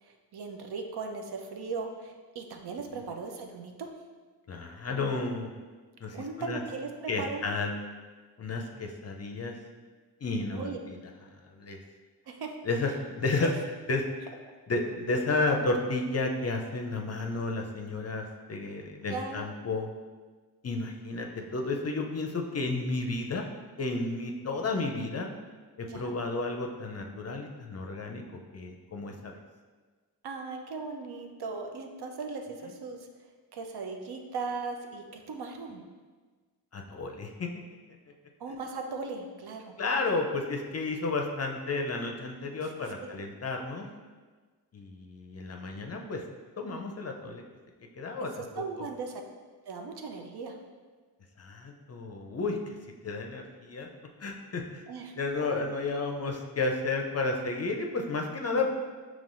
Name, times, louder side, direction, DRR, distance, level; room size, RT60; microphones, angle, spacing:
voice 1, 0.1-3.9 6.1-7.4 10.4-10.8 12.3-12.5 13.4-13.5 19.1-19.5 25.9-26.1 30.2-33.0 33.5-35.8 38.4-39.7 43.0-43.1 48.2-48.3 48.5-49.2 49.7-50.6 54.9-55.1 55.4-55.5, right 4 dB, 60° right, 3 dB, 0.6 m, -38 dB
voice 2, 4.5-5.5 6.0-6.6 7.1-7.7 8.4-9.6 10.2-11.0 11.5-11.8 12.6-13.5 13.9-14.1 14.7-19.9 20.6-23.4 23.8-25.3 25.8-28.2 28.5-29.4 36.7-37.5 39.8-43.9 44.7-46.2 46.6-47.4 48.0-48.3 48.6-48.7 51.4-52.7 53.0-53.9 54.2-54.8 55.2-58.7, left 3 dB, 35° left, 3 dB, 0.5 m, -32 dB
5.3 x 3.1 x 2.5 m, 1.4 s
supercardioid pair, 45°, 44 cm